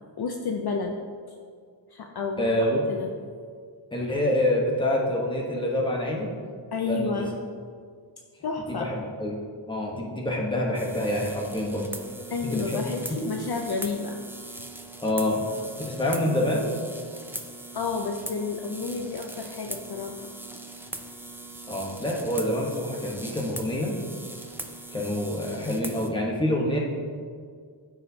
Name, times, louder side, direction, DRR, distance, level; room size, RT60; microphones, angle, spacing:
voice 1, 0.2-1.0 1.3-1.4 1.9-2.5 2.9-3.1 6.7-7.3 8.4-8.9 12.3-14.2 17.7-20.3, left 4 dB, 55° left, 3 dB, 0.5 m, -31 dB
voice 2, 2.4-2.9 3.9-6.3 6.8-7.3 8.8-9.4 9.7-11.8 12.4-12.8 13.1-13.2 15.0-15.4 15.8-16.6 21.7-24.0 24.9-26.8, left 1 dB, 10° left, -2 dB, 1.0 m, -26 dB
sound 1, 10.7-26.1, right 2 dB, 5° right, 0.3 m, -40 dB
13.5 x 4.8 x 2.7 m, 2.1 s
wide cardioid pair, 170°, 48 cm